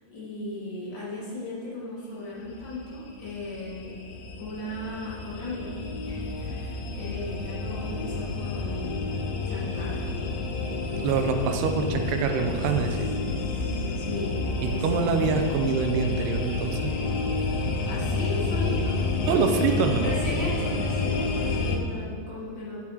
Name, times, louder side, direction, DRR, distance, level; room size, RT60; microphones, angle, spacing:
voice 1, 0.1-3.9 4.4-5.7 6.0-9.1 9.5-10.1 13.4-15.2 17.8-19.0 20.0-22.8, left 1 dB, 30° left, -9 dB, 2.8 m, -36 dB
sound 1, 2.5-21.8, left 3 dB, 90° left, 2.0 m, -29 dB
voice 2, 11.0-13.1 14.6-17.0 19.3-20.1, right 5 dB, 80° right, 5 dB, 2.5 m, -25 dB
10.5 x 7.3 x 4.5 m, 2.2 s
omnidirectional pair, 5.0 m